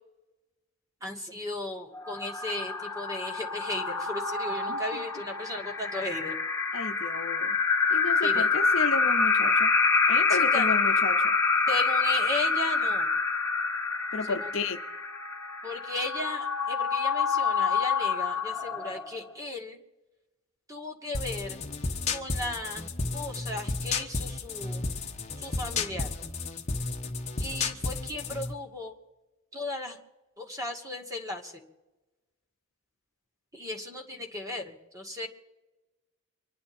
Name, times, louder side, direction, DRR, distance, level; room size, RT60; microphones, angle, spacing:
voice 1, 1.0-6.4 8.2-8.5 10.3-10.7 11.7-13.1 14.4-14.5 15.6-19.8 20.7-21.6 22.1-22.9 23.1-24.8 25.4-26.1 27.4-28.9 29.5-30.0 30.4-31.5 33.5-35.3, left 2 dB, 15° right, 2 dB, 2.1 m, -36 dB
sound 1, 1.9-19.3, left 4 dB, 15° left, 1.8 m, -27 dB
voice 2, 4.7-5.1 6.7-7.5 7.9-9.7 10.1-11.3 14.1-14.8, left 3 dB, 60° left, 7 dB, 0.8 m, -33 dB
sound 2, 21.1-28.5, left 3 dB, 30° left, 1.3 m, -32 dB
26.0 x 11.0 x 4.4 m, 1.1 s
head